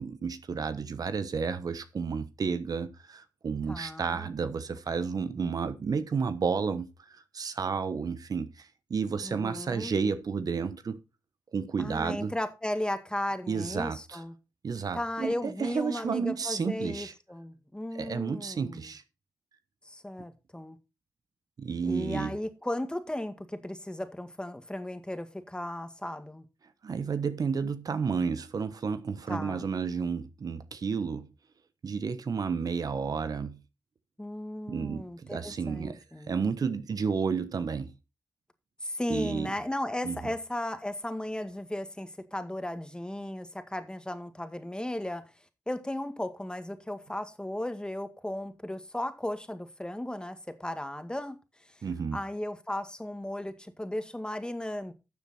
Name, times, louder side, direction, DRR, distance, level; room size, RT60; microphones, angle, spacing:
voice 1, 0.0-11.0 11.5-12.3 13.5-14.2 14.6-17.1 17.9-19.0 21.6-22.3 26.8-31.3 31.8-33.6 34.7-38.0 39.1-39.5 40.0-40.2 51.8-52.2, right 5 dB, 60° right, 1.1 m, -31 dB
voice 2, 3.7-4.3 9.2-10.0 11.8-14.3 14.9-18.9 19.8-20.8 21.8-26.4 29.3-29.7 34.2-36.3 38.8-45.2 45.7-51.4 51.7-51.8 52.1-54.9, left 1 dB, 10° left, 2.0 m, -35 dB
12.5 x 7.0 x 4.4 m
cardioid pair, 55°, 7 cm